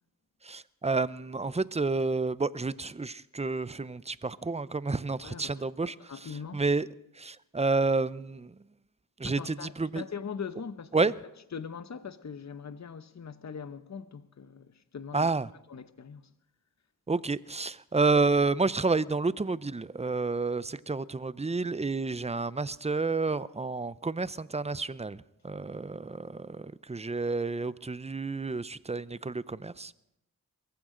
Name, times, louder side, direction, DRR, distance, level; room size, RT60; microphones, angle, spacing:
voice 1, 0.4-6.1 6.5-6.9 7.2-8.5 9.2-10.0 10.9-11.1 15.1-15.5 17.1-29.9, right 3 dB, 20° right, 0.6 m, -30 dB
voice 2, 5.2-5.5 5.8-6.6 9.2-11.1 11.5-15.3 15.7-16.3, left 6 dB, 50° left, 0.8 m, -41 dB
22.0 x 15.0 x 3.8 m
cardioid pair, 45°, 36 cm